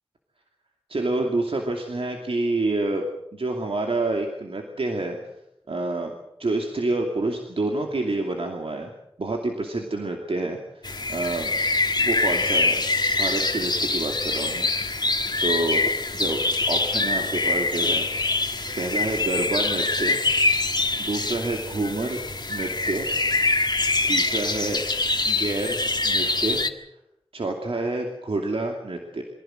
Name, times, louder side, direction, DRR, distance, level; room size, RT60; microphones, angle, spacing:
voice 1, 0.9-3.1 3.3-5.2 5.7-6.1 6.4-8.9 9.2-11.5 12.0-12.8 13.2-15.0 15.4-15.9 16.1-16.4 16.7-18.1 18.8-20.2 21.0-22.2 22.5-23.1 24.1-24.8 25.2-26.6 27.3-29.2, right 2 dB, 80° right, 2 dB, 2.6 m, -28 dB
sound 1, 10.8-26.7, left 3 dB, 45° left, 1.6 m, -24 dB
24.0 x 16.0 x 7.8 m, 0.81 s
wide cardioid pair, 70°, 10 cm